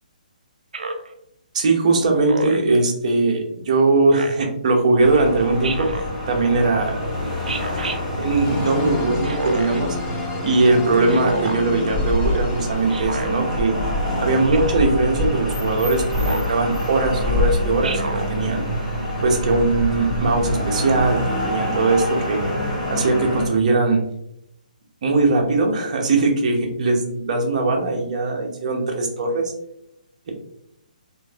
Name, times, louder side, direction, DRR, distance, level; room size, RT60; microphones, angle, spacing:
Speech synthesizer, 0.7-1.1 2.3-2.7 4.1-4.5 5.6-6.1 7.5-8.0 9.2-9.8 11.1-11.6 12.9-13.3 14.5-14.9 16.2-16.6 17.8-18.3, right 3 dB, 75° right, 0.4 m, -29 dB
voice 1, 1.5-5.9 6.3-7.3 8.2-10.0 10.4-13.7 14.2-18.0 18.3-18.6 19.2-22.4 22.9-24.0 25.0-29.5, right 3 dB, 50° right, 2 dB, 0.8 m, -20 dB
sound 1, 5.0-23.5, left 1 dB, 5° left, 1.1 m, -26 dB
sound 2, 8.4-13.6, left 6 dB, 20° left, 0.4 m, -34 dB
3.0 x 2.5 x 2.3 m, 0.77 s
hypercardioid pair, 145°, 5 cm